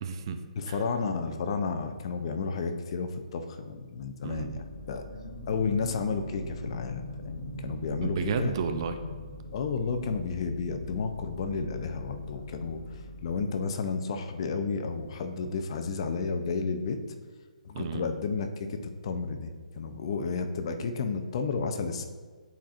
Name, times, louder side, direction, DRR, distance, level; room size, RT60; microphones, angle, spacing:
voice 1, 0.0-0.8 4.2-4.6 8.0-9.0 17.7-18.1, right 6 dB, 40° right, 7 dB, 0.5 m, -33 dB
voice 2, 0.6-5.0 5.5-8.5 9.5-17.0 17.6-19.5 19.8-22.1, left 4 dB, 45° left, 7 dB, 0.6 m, -32 dB
sound 1, 4.3-13.4, left 1 dB, 60° left, 1.0 m, -41 dB
10.0 x 4.3 x 2.5 m, 1.5 s
hypercardioid pair, 150°, 4 cm